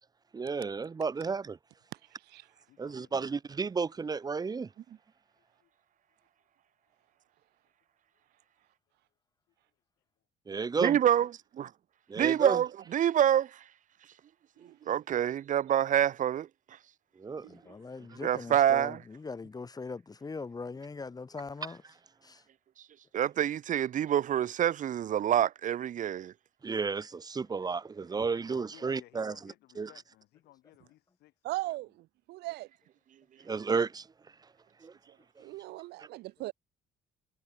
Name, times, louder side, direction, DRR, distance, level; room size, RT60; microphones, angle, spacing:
voice 1, 0.3-1.6 2.8-4.7 10.5-11.0 12.1-12.6 17.2-17.5 26.6-29.3 29.8-29.9 33.4-34.1 34.8-34.9, right 5 dB, 25° right, 0.9 m, -32 dB
voice 2, 2.7-3.4 5.4-5.7 6.4-6.5 6.9-7.1 8.5-8.6 9.7-10.0 14.6-14.7 28.1-31.8, left 16 dB, 80° left, 5.6 m, -60 dB
voice 3, 10.8-11.3 11.6-11.7 12.2-13.5 14.9-16.5 18.2-19.0 23.1-26.3, right 10 dB, 50° right, 1.0 m, -26 dB
voice 4, 17.5-21.8 22.2-22.4, left 4 dB, 20° left, 2.0 m, -41 dB
voice 5, 31.4-31.9 32.3-32.7 35.4-36.5, right 18 dB, 80° right, 0.6 m, -38 dB
cardioid pair, 110°, 17 cm